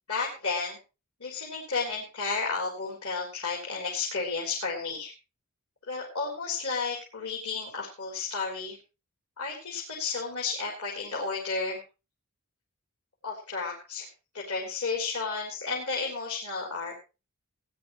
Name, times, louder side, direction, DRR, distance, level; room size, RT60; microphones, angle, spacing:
voice 1, 0.1-0.8 1.2-5.1 5.9-8.8 9.4-11.8 13.2-14.1 14.3-16.9, left 4 dB, 80° left, -2 dB, 3.8 m, -32 dB
18.5 x 10.5 x 3.2 m, 0.30 s
head